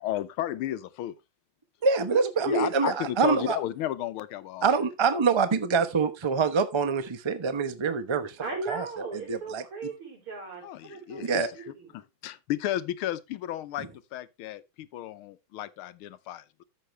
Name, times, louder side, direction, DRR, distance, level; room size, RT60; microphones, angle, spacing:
voice 1, 0.0-1.1 2.5-4.7 10.6-11.6 11.9-16.6, left 13 dB, 85° left, 1.6 m, -33 dB
voice 2, 1.8-3.6 4.6-8.4 8.7-8.9 9.1-9.6 11.2-11.5 13.8-13.9, right 5 dB, 30° right, 0.5 m, -25 dB
voice 3, 8.4-12.0, right 3 dB, 90° right, 5.0 m, -38 dB
13.5 x 6.8 x 3.2 m
omnidirectional pair, 2.3 m